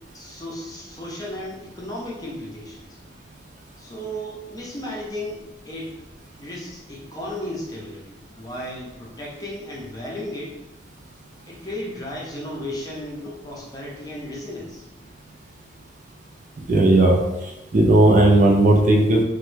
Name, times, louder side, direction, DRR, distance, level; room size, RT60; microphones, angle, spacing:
voice 1, 0.1-3.0 3.8-6.0 6.4-10.6 11.5-14.8, left 1 dB, 20° left, -4 dB, 0.6 m, -34 dB
voice 2, 16.7-17.2 17.7-19.2, right 2 dB, 40° right, 0 dB, 0.4 m, -15 dB
3.0 x 2.2 x 3.2 m, 1.0 s
head